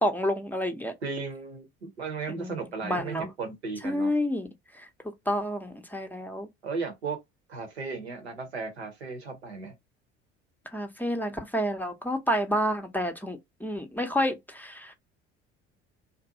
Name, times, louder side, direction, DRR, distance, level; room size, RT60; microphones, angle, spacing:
voice 1, 0.0-0.9 2.3-3.3 3.8-4.5 4.8-4.9 5.3-6.5 10.7-14.9, equal, 5° left, 0.5 m, -29 dB
voice 2, 1.0-4.1 6.6-7.2 7.5-9.7, right 4 dB, 85° right, 0.8 m, -35 dB
2.5 x 2.2 x 2.6 m
figure-of-eight pair, 60°, 32 cm